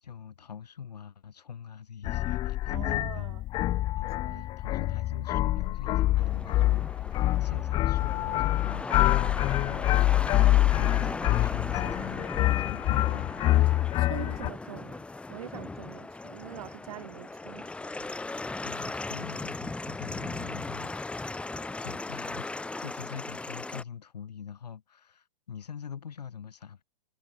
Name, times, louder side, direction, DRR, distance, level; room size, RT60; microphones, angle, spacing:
voice 1, 0.0-3.3 4.0-14.1 18.6-21.4 21.8-26.8, left 7 dB, 85° left, 2.5 m, -44 dB
sound 1, 2.0-14.5, left 15 dB, 20° left, 0.6 m, -26 dB
voice 2, 2.7-3.4 4.2-4.5 14.0-18.2, right 13 dB, 60° right, 2.3 m, -44 dB
sound 2, 6.2-23.8, left 3 dB, 5° left, 1.9 m, -38 dB
hypercardioid pair, 135°, 20 cm